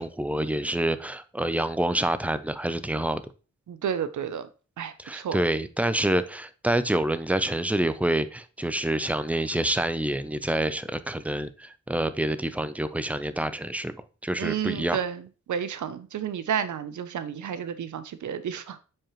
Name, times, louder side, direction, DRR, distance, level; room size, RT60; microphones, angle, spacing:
voice 1, 0.0-3.2 5.0-13.9 14.2-15.0, right 1 dB, 5° right, 0.5 m, -27 dB
voice 2, 3.7-4.5 4.8-5.4 14.4-15.2 15.5-18.8, right 8 dB, 85° right, 0.6 m, -31 dB
7.4 x 4.8 x 3.0 m
wide cardioid pair, 85°, 29 cm